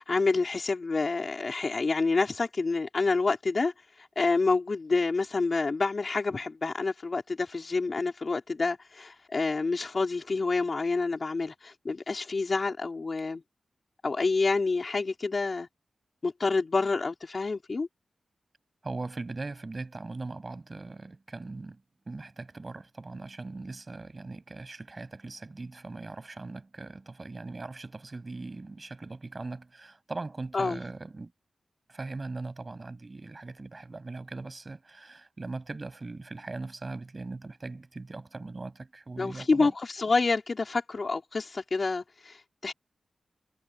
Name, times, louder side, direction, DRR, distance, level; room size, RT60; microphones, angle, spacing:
voice 1, 0.0-3.7 4.0-13.4 14.0-15.7 16.2-17.9 30.5-30.8 39.2-39.7 40.0-42.7, left 3 dB, 40° left, 3.8 m, -28 dB
voice 2, 18.8-31.3 31.9-39.7, right 3 dB, 30° right, 7.3 m, -40 dB
wide cardioid pair, 145°, 0 cm